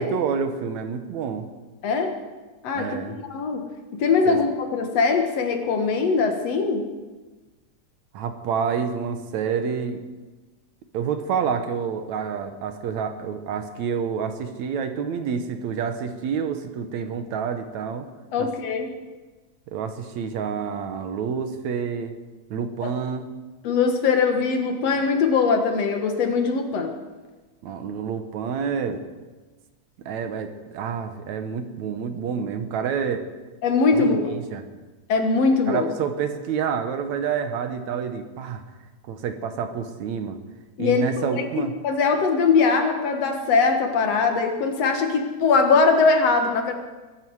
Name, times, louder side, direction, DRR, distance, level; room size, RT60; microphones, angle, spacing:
voice 1, 0.0-1.5 2.8-3.2 4.3-4.4 8.1-10.0 10.9-18.1 18.4-18.5 19.7-22.1 22.5-23.3 27.6-29.0 30.0-33.2 33.9-34.6 35.7-38.6 39.1-40.4 40.8-41.7, right 6 dB, 75° right, 8 dB, 2.4 m, -28 dB
voice 2, 2.6-3.0 3.3-3.6 4.0-6.9 18.3-18.9 22.8-22.9 23.6-26.9 33.6-34.3 35.1-35.9 40.8-41.0 41.3-46.7, left 4 dB, 65° left, 5 dB, 2.5 m, -21 dB
22.0 x 13.0 x 4.7 m, 1.2 s
omnidirectional pair, 3.4 m